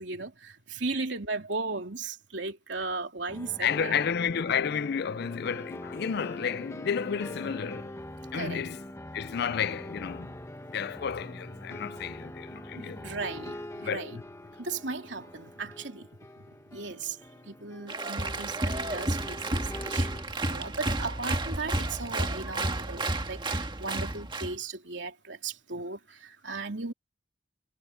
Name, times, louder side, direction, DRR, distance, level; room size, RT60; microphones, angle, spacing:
voice 1, 0.0-4.0 8.3-8.6 12.8-13.5 13.8-14.2 14.6-16.1 16.7-17.2 17.4-20.1 20.5-23.0 23.3-26.9, right 3 dB, 70° right, 3.2 m, -36 dB
sound 1, 3.3-20.2, left 1 dB, 15° left, 1.6 m, -43 dB
voice 2, 3.6-7.9 8.3-8.8 9.1-10.4 10.7-13.0 13.8-14.2 18.8-18.9, left 7 dB, 60° left, 0.4 m, -31 dB
Applause, 17.9-24.6, right 2 dB, 25° right, 1.7 m, -31 dB
head